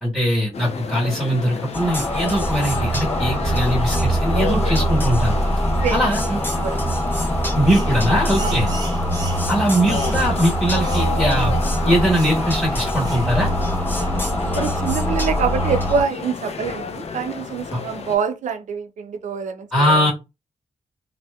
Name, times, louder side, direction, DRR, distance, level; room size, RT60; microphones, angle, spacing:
voice 1, 0.0-5.3 5.9-6.4 7.5-8.7 9.5-11.5 11.8-13.5 17.7-17.8 19.7-20.1, equal, 5° right, 1.1 m, -21 dB
sound 1, 0.5-18.2, left 5 dB, 60° left, 0.4 m, -32 dB
sound 2, 1.7-16.0, equal, 15° left, 0.9 m, -23 dB
voice 2, 5.8-6.1 6.5-6.9 8.4-8.8 14.5-20.1, right 6 dB, 80° right, 0.4 m, -26 dB
sound 3, 7.7-7.9 8.3-9.5 9.9-10.2 10.8-11.1 11.4-11.5 12.1-12.4 13.0-13.3 13.9-14.2, right 3 dB, 30° right, 0.7 m, -37 dB
2.7 x 2.1 x 2.2 m
cardioid pair, 80°, 12 cm